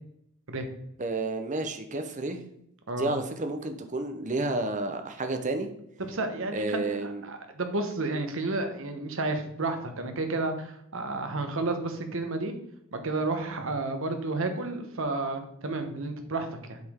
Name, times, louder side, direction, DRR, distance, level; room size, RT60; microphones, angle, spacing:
voice 1, 1.0-2.4 3.0-5.7 6.5-7.2, right 2 dB, 35° right, 7 dB, 0.8 m, -30 dB
voice 2, 6.0-12.5 12.9-16.8, right 2 dB, 65° right, 6 dB, 1.1 m, -31 dB
7.9 x 5.1 x 3.7 m, 0.75 s
head